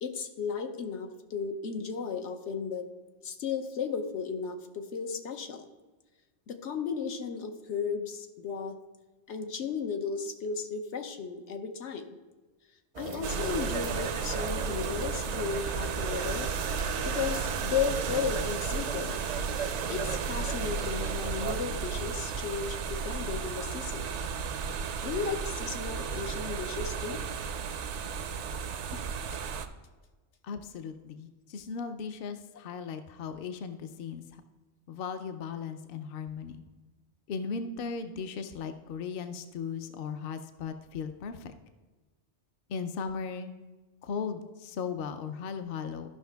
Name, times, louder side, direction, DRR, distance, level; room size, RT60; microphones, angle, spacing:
voice 1, 0.0-2.9 3.2-5.6 6.5-8.8 9.3-12.2 13.0-16.5 17.0-19.2 19.9-24.1 25.0-27.2 28.9-29.0 29.3-29.4, left 6 dB, 80° left, 6 dB, 1.1 m, -34 dB
sound 1, 12.9-21.6, right 5 dB, 50° right, 0.5 m, -39 dB
sound 2, 13.2-29.7, right 6 dB, 85° right, 0.9 m, -34 dB
voice 2, 30.4-34.4 34.9-36.6 37.3-41.5 42.7-43.5 44.0-46.1, left 6 dB, 60° left, 8 dB, 0.7 m, -37 dB
13.5 x 5.7 x 3.4 m, 1.3 s
omnidirectional pair, 1.2 m